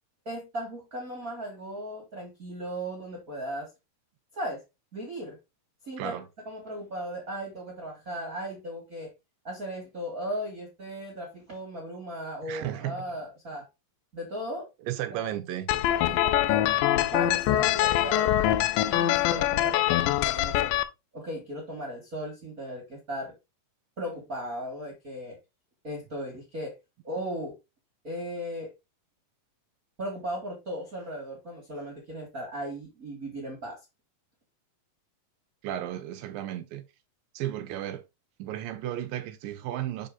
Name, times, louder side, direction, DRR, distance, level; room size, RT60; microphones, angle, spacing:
voice 1, 0.3-3.7 4.3-4.6 4.9-5.4 5.8-6.1 6.5-9.1 9.4-13.6 14.1-14.7 15.1-15.3 16.1-16.6 17.1-18.4 18.9-20.7 21.1-23.3 24.0-25.4 25.8-26.7 27.0-27.5 28.0-28.7 30.0-33.8, equal, 30° right, 2.0 m, -36 dB
voice 2, 6.0-6.3 12.4-13.1 14.8-15.7 35.6-36.8 37.3-38.0 38.4-40.1, right 12 dB, 80° right, 2.4 m, -34 dB
sound 1, 15.7-20.8, left 13 dB, 80° left, 2.1 m, -24 dB
6.9 x 4.0 x 3.9 m
omnidirectional pair, 4.2 m